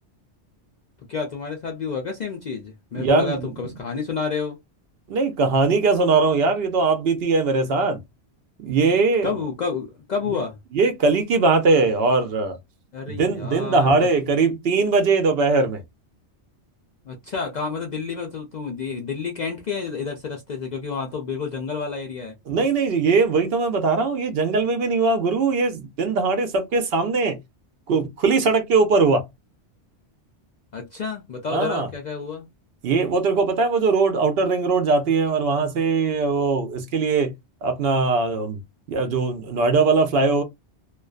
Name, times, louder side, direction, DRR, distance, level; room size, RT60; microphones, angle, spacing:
voice 1, 1.1-4.6 9.2-10.6 12.9-14.0 17.0-22.3 30.7-32.5, left 5 dB, 60° left, 0.4 m, -29 dB
voice 2, 3.0-3.5 5.1-8.0 8.6-9.3 10.7-12.6 13.1-15.8 22.5-27.4 27.9-29.3 31.5-31.9 32.8-37.3 37.6-38.6 38.9-40.4, right 4 dB, 65° right, 0.7 m, -20 dB
2.4 x 2.2 x 2.3 m
omnidirectional pair, 1.2 m